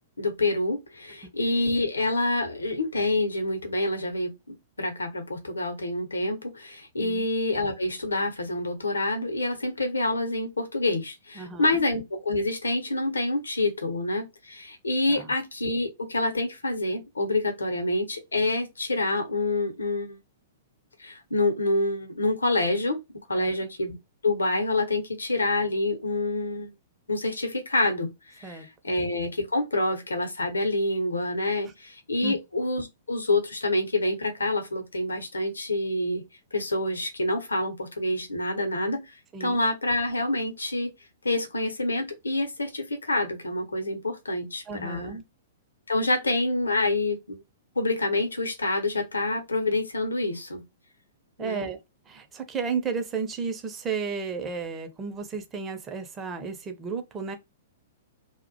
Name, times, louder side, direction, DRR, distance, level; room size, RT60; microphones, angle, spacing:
voice 1, 0.2-4.3 4.8-20.2 21.0-23.0 23.3-23.9 24.2-26.7 27.1-28.1 28.4-36.2 36.5-40.9 41.2-45.2 45.9-47.4 47.8-50.6 51.4-51.7, left 2 dB, 75° left, 0.7 m, -27 dB
voice 2, 11.4-11.9 15.1-15.3 23.3-23.6 28.4-28.9 32.2-32.4 39.3-39.6 44.7-45.2 51.4-51.8 52.1-57.4, right 5 dB, 20° right, 0.5 m, -33 dB
2.3 x 2.1 x 2.6 m
figure-of-eight pair, 105°, 0 cm